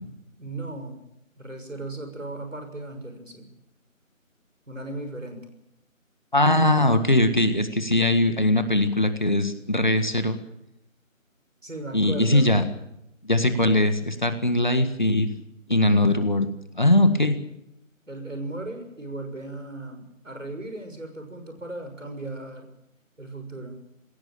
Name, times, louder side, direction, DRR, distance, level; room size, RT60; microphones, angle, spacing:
voice 1, 0.4-1.0 1.4-3.5 4.7-5.4 11.6-12.5 18.1-22.7 23.2-23.8, right 2 dB, 65° right, 6 dB, 6.3 m, -36 dB
voice 2, 6.3-10.4 11.9-12.6 13.3-15.3 15.7-16.5 16.8-17.4, left 1 dB, 35° left, 9 dB, 1.6 m, -21 dB
20.0 x 17.0 x 8.9 m, 0.81 s
figure-of-eight pair, 170°, 41 cm